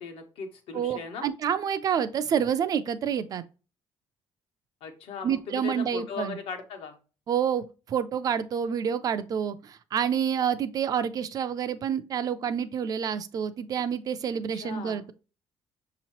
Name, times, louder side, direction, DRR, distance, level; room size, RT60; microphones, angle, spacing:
voice 1, 0.0-1.3 4.8-7.0 14.5-15.0, left 5 dB, 70° left, 1.1 m, -38 dB
voice 2, 0.7-3.4 5.2-6.4 7.3-15.1, right 8 dB, 40° right, 0.4 m, -28 dB
6.3 x 2.9 x 2.9 m
cardioid pair, 175°, 10 cm